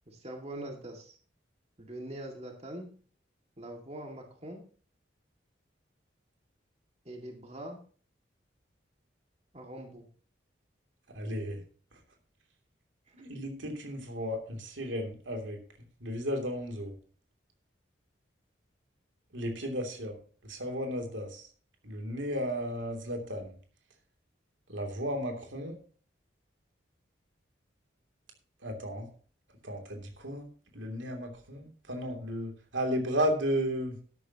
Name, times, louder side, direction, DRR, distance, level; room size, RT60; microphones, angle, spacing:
voice 1, 0.1-1.2 1.8-2.9 3.6-4.6 7.0-7.8 9.5-10.1 13.1-13.2, right 1 dB, 35° right, 2 dB, 2.1 m, -43 dB
voice 2, 11.1-11.6 13.1-15.6 16.0-16.9 19.3-20.2 20.5-21.5 21.8-23.5 24.7-25.7 28.6-29.1 29.6-30.5 30.7-34.0, equal, 85° right, 3 dB, 2.9 m, -34 dB
12.5 x 12.0 x 2.9 m, 0.42 s
head